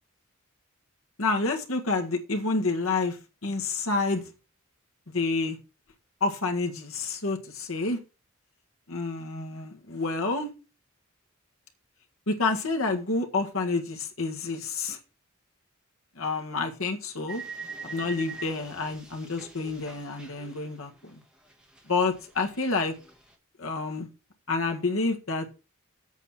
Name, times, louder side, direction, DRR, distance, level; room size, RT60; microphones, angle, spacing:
voice 1, 1.2-4.3 5.1-5.6 6.2-8.0 8.9-10.5 12.3-15.0 16.1-17.4 17.8-21.2 21.9-22.9 23.6-24.1 24.5-25.5, left 3 dB, 90° left, 3 dB, 1.7 m, -29 dB
sound 1, 17.3-21.2 21.5-23.3, right 4 dB, 5° right, 2.0 m, -44 dB
8.2 x 5.7 x 6.4 m, 0.32 s
head